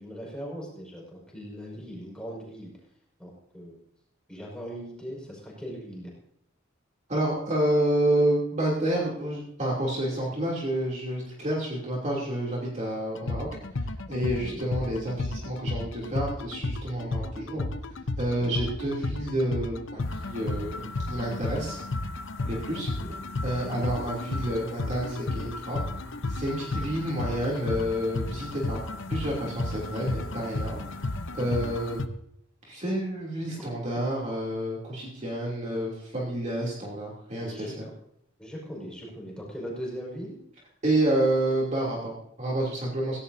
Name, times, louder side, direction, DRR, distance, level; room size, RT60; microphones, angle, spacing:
voice 1, 0.0-2.7 3.2-3.8 4.3-6.1 14.4-14.6 18.4-18.6 23.0-23.2 23.6-23.8 33.5-33.7 37.4-37.9 38.4-40.4, equal, 5° left, -3 dB, 5.5 m, -39 dB
voice 2, 7.1-13.5 14.1-17.7 18.2-21.8 22.4-22.9 23.4-25.8 26.3-28.8 29.1-30.8 31.3-32.0 32.7-37.9 40.8-43.2, right 1 dB, 35° right, -3 dB, 3.0 m, -29 dB
sound 1, 13.2-32.1, left 2 dB, 65° left, 0.9 m, -33 dB
17.0 x 16.0 x 2.8 m, 0.70 s
head